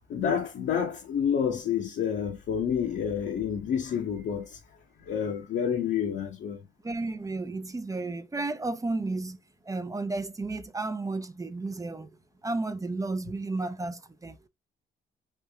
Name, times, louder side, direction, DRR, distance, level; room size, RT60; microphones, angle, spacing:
voice 1, 0.1-4.6 5.0-6.6, left 8 dB, 65° left, 0.9 m, -29 dB
voice 2, 6.8-9.4 9.6-12.1 12.4-14.4, right 3 dB, 15° right, 0.4 m, -32 dB
3.3 x 2.6 x 3.4 m
cardioid pair, 90°, 20 cm